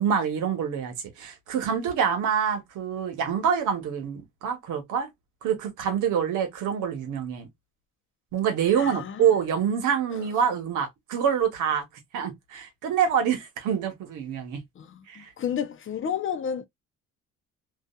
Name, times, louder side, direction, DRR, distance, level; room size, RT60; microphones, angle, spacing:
voice 1, 0.0-5.1 5.4-7.5 8.3-11.9 12.1-14.6 15.1-15.3, right 8 dB, 85° right, 1.0 m, -26 dB
voice 2, 8.8-9.2 14.8-15.0 15.4-16.6, left 8 dB, 40° left, 0.6 m, -30 dB
2.7 x 2.3 x 2.2 m
cardioid pair, 90°, 30 cm